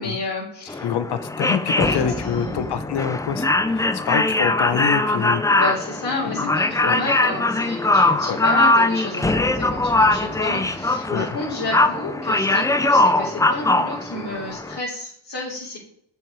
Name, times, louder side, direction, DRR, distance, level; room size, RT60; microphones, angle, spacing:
voice 1, 0.0-0.9 1.7-2.8 5.6-15.8, left 2 dB, 45° left, -6 dB, 3.2 m, -30 dB
sound 1, 0.7-14.8, left 2 dB, 10° left, 0.4 m, -21 dB
voice 2, 0.8-5.6 6.2-6.5 6.8-7.0 8.3-8.4 11.1-11.3, left 8 dB, 60° left, 11 dB, 1.0 m, -26 dB
7.3 x 6.0 x 4.7 m, 0.70 s
cardioid pair, 85°, 45 cm